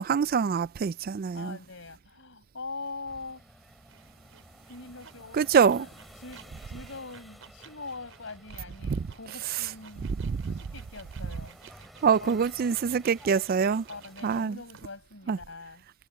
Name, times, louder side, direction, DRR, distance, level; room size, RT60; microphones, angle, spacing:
voice 1, 0.0-1.6 5.3-5.9 8.8-9.1 10.2-10.6 12.0-13.9 14.2-14.6 15.3-15.4, right 6 dB, 45° right, 0.3 m, -25 dB
voice 2, 1.3-3.4 4.7-5.9 6.2-11.6 12.2-12.4 13.9-15.8, left 3 dB, 65° left, 5.4 m, -43 dB
sound 1, 3.0-14.5, equal, ahead, 5.6 m, -53 dB
sound 2, 3.9-15.0, right 6 dB, 75° right, 4.6 m, -54 dB
head